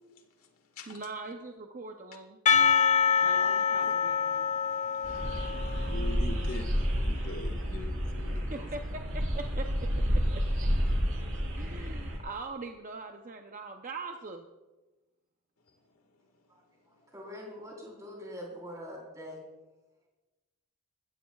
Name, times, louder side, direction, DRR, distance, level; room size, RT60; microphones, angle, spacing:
voice 1, 0.9-2.4 3.2-4.5 8.5-9.7 10.3-10.4 11.5-14.4, right 3 dB, 35° right, 4 dB, 0.7 m, -42 dB
Percussion, 2.5-6.4, left 6 dB, 30° left, 0.6 m, -26 dB
voice 2, 3.3-4.1 5.7-6.7 7.0-8.7, left 2 dB, 80° left, 5 dB, 1.7 m, -43 dB
sound 1, 5.0-12.2, equal, 65° right, 3.7 m, -30 dB
voice 3, 17.1-19.4, equal, 15° right, -2 dB, 3.9 m, -43 dB
21.0 x 15.0 x 2.4 m, 1.2 s
head